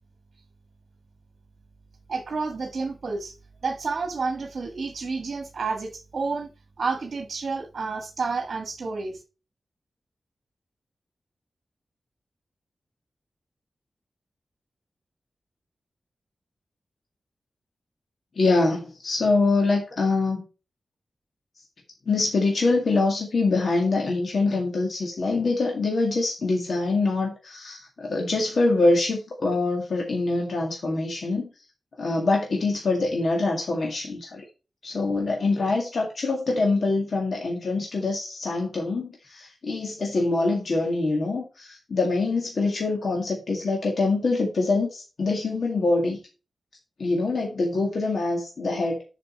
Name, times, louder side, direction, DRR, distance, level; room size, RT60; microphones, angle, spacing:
voice 1, 2.1-3.3 3.6-6.5 6.8-9.2, right 4 dB, 60° right, 1.5 m, -30 dB
voice 2, 18.4-20.4 22.1-31.5 32.0-34.4 34.8-46.2 47.0-49.0, left 3 dB, 65° left, 1.9 m, -24 dB
7.4 x 5.2 x 4.4 m
wide cardioid pair, 115°, 0 cm